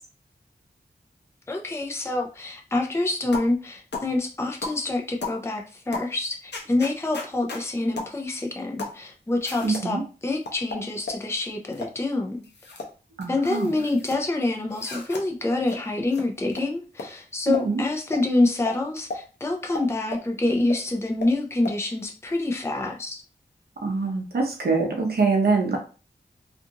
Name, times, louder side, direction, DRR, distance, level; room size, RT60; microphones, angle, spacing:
voice 1, 1.5-12.4 13.3-23.2, left 2 dB, 15° left, 1 dB, 0.5 m, -26 dB
sound 1, 3.3-3.5 3.9-4.1 4.6-4.8 5.2-5.4 5.9-6.1 6.5-7.6 8.0-8.1 8.8-9.0 9.4-9.9 10.5-11.2 11.7-12.0 12.4-12.9 13.2-14.2 14.7-15.2 15.7-15.8 16.1-16.2 16.5-16.6 17.0-17.1 17.5-17.7 18.1-18.2 18.7-18.8 19.1-19.2 19.7-20.3 20.7-20.8 21.2-21.3 21.6-21.8, left 3 dB, 75° left, 0.6 m, -34 dB
voice 2, 9.6-10.0 13.2-13.7 17.5-17.8 23.8-25.8, right 4 dB, 65° right, 0 dB, 0.7 m, -24 dB
2.5 x 2.4 x 2.8 m, 0.35 s
wide cardioid pair, 75°, 18 cm